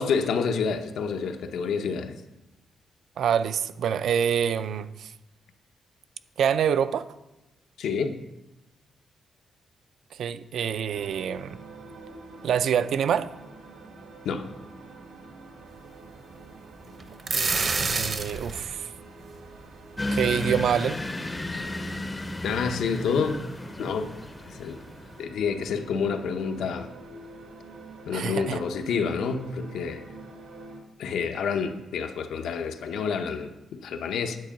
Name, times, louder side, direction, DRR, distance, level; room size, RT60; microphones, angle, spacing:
voice 1, 0.0-2.2 7.8-8.2 14.2-14.5 22.4-23.4 23.8-24.1 24.5-24.8 25.2-26.9 28.1-30.0 31.0-34.4, left 5 dB, 85° left, 6 dB, 0.8 m, -28 dB
voice 2, 3.2-5.1 6.4-7.0 10.1-11.6 12.4-13.3 17.3-18.9 20.1-21.0 28.1-28.6, right 8 dB, 65° right, 13 dB, 0.4 m, -26 dB
sound 1, 10.9-30.8, right 2 dB, 85° right, 1.7 m, -46 dB
sound 2, 17.0-18.7, right 4 dB, 35° right, 0.7 m, -27 dB
sound 3, 20.0-25.2, left 1 dB, 15° left, 0.5 m, -33 dB
9.5 x 4.5 x 7.5 m, 0.99 s
wide cardioid pair, 160°, 0 cm